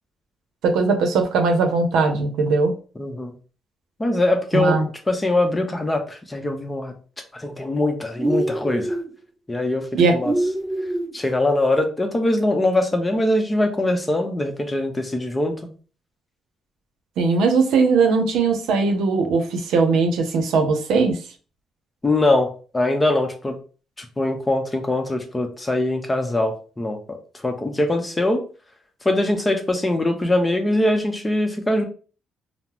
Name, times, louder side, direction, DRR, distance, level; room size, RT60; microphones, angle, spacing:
voice 1, 0.6-2.7 4.5-4.9 9.9-10.2 17.2-21.2, right 4 dB, 85° right, 5 dB, 0.6 m, -19 dB
voice 2, 3.0-3.3 4.0-4.8 5.1-6.9 7.3-9.0 9.5-10.3 11.1-15.5 22.0-23.6 24.0-27.2 27.4-28.5 29.0-31.8, left 1 dB, 20° left, 5 dB, 0.7 m, -22 dB
sound 1, 8.2-9.1 10.2-11.1, right 1 dB, 25° right, 0.4 m, -24 dB
3.7 x 2.0 x 2.9 m, 0.38 s
cardioid pair, 90°, 0 cm